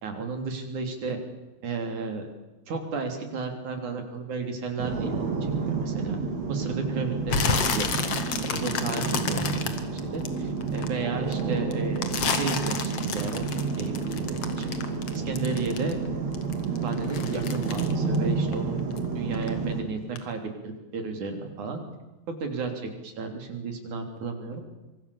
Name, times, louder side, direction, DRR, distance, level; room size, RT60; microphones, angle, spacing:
voice 1, 0.0-1.2 1.6-2.3 2.7-5.2 5.7-6.2 6.5-8.1 8.5-9.7 9.9-13.5 13.8-14.8 15.2-16.2 16.8-18.9 19.2-21.8 22.3-22.7 23.0-24.6, right 4 dB, 85° right, 5 dB, 4.9 m, -33 dB
sound 1, 4.8-19.8, right 4 dB, 65° right, 4.1 m, -30 dB
sound 2, 7.3-10.9 11.3-16.1 16.3-19.1 19.3-19.7 20.2-20.3, left 5 dB, 55° left, 2.8 m, -30 dB
25.0 x 24.5 x 7.1 m, 1.1 s
omnidirectional pair, 3.4 m